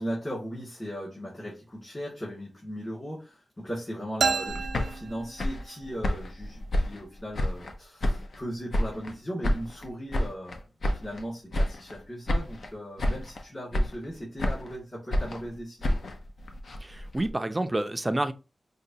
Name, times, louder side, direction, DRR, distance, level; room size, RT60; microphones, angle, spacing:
voice 1, 0.0-10.6 11.0-16.1, equal, 25° left, 2.0 m, -38 dB
sound 1, 4.2-5.9, right 5 dB, 90° right, 0.4 m, -30 dB
sound 2, 4.5-7.7 8.0-9.1 9.4-11.2 11.5-12.0 12.3-12.7 13.0-13.4 13.7-14.8 15.1-17.3, left 1 dB, 70° left, 0.7 m, -29 dB
voice 2, 16.8-18.3, right 1 dB, 20° right, 0.4 m, -29 dB
5.0 x 2.2 x 2.7 m
wide cardioid pair, 115°, 0 cm